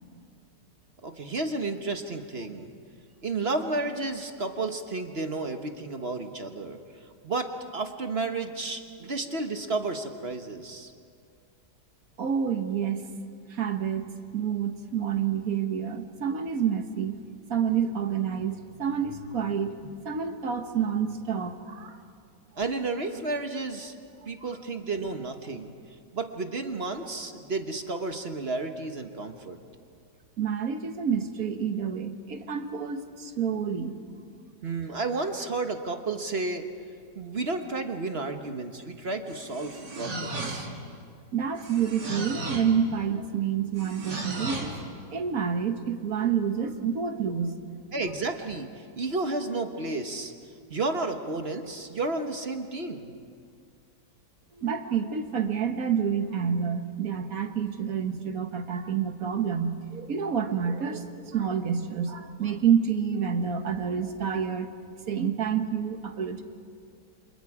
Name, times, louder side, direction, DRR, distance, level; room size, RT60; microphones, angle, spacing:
voice 1, 1.0-2.7 3.2-10.9 22.6-24.0 24.3-25.7 26.1-29.6 34.6-36.7 37.1-40.7 47.9-50.3 50.7-53.1, right 3 dB, 40° right, 6 dB, 1.3 m, -32 dB
voice 2, 12.2-13.1 13.5-17.2 17.5-22.0 30.4-34.0 40.4-40.5 41.3-44.8 45.1-47.7 54.5-64.7 65.1-66.4, right 7 dB, 55° right, 7 dB, 1.6 m, -28 dB
sound 1, 39.3-40.9 41.6-42.8 43.8-44.8, right 2 dB, 85° right, 3.2 m, -35 dB
29.5 x 26.5 x 4.9 m, 2.2 s
omnidirectional pair, 1.9 m